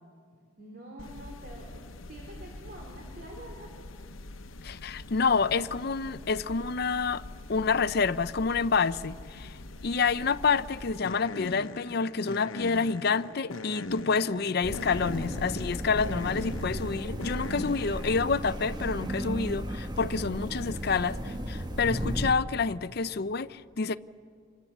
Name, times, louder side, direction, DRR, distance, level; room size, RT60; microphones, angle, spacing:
voice 1, 0.6-1.8 2.1-3.7 17.0-17.1, right 1 dB, 45° right, 3.7 m, -46 dB
sound 1, 1.0-18.4, left 2 dB, 80° left, 0.9 m, -42 dB
voice 2, 4.6-7.2 7.5-9.5 9.8-24.0, left 5 dB, 50° left, 0.5 m, -28 dB
sound 2, 14.6-22.3, equal, 20° right, 1.3 m, -35 dB
27.0 x 23.0 x 7.3 m
head